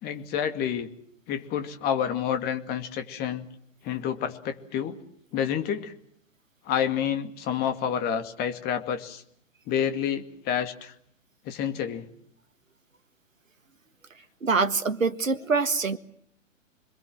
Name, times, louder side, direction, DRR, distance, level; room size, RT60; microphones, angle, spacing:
voice 1, 0.0-0.9 1.3-3.5 3.8-5.0 5.3-5.9 6.7-9.2 9.7-10.9 11.5-12.1, left 8 dB, 25° left, 8 dB, 2.3 m, -29 dB
voice 2, 14.4-16.0, right 4 dB, 80° right, 11 dB, 1.7 m, -24 dB
27.0 x 22.0 x 7.6 m, 0.69 s
figure-of-eight pair, 120°, 39 cm